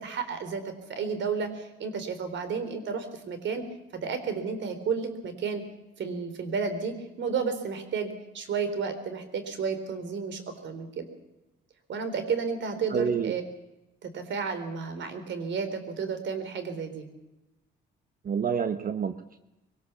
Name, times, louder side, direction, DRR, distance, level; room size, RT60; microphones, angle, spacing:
voice 1, 0.0-3.6 3.9-5.6 6.0-11.0 11.9-13.4 14.0-17.1, right 5 dB, 65° right, 10 dB, 3.8 m, -32 dB
voice 2, 12.9-13.3 18.2-19.4, right 6 dB, 45° right, 10 dB, 1.1 m, -28 dB
22.5 x 18.5 x 7.0 m, 0.97 s
cardioid pair, 90°, 20 cm